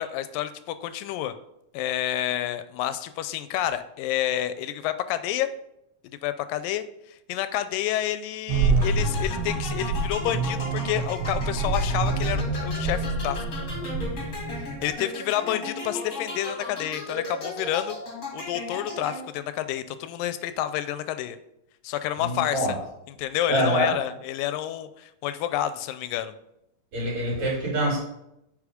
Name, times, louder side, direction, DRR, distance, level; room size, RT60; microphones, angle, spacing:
voice 1, 0.0-1.3 1.7-5.5 6.2-13.4 14.6-18.0 18.3-21.4 21.8-22.7 23.2-26.3, left 12 dB, 85° left, 12 dB, 2.3 m, -29 dB
sound 1, 8.5-15.0, right 3 dB, 85° right, 2.7 m, -27 dB
sound 2, 8.8-19.5, left 2 dB, 35° left, 2.0 m, -36 dB
voice 2, 22.2-22.7 23.5-23.9 26.9-28.0, right 1 dB, 55° right, -3 dB, 4.1 m, -25 dB
8.4 x 5.2 x 5.1 m, 0.82 s
omnidirectional pair, 3.9 m